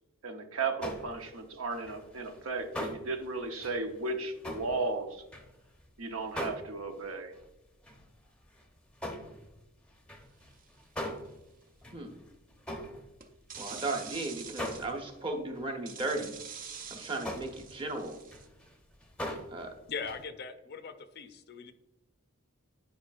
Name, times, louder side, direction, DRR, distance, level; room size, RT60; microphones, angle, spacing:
voice 1, 0.2-5.2 6.0-7.4, right 3 dB, 70° right, 5 dB, 0.8 m, -35 dB
sound 1, 0.8-1.4 1.7-5.9 6.2-7.4 7.8-8.1 8.4-14.1 14.5-15.3 15.5-15.7 16.1-16.3 16.7-16.9 17.2-19.7 20.0-20.2, left 1 dB, 5° left, 0.7 m, -41 dB
sound 2, 10.6-10.8 13.2-14.9 15.9-18.5, right 6 dB, 40° right, 0.6 m, -45 dB
voice 2, 13.6-16.3 16.9-18.1 19.5-19.7, right 2 dB, 25° right, 3 dB, 1.0 m, -35 dB
voice 3, 19.9-21.7, left 5 dB, 50° left, 10 dB, 0.5 m, -40 dB
10.0 x 4.9 x 2.4 m, 0.98 s
head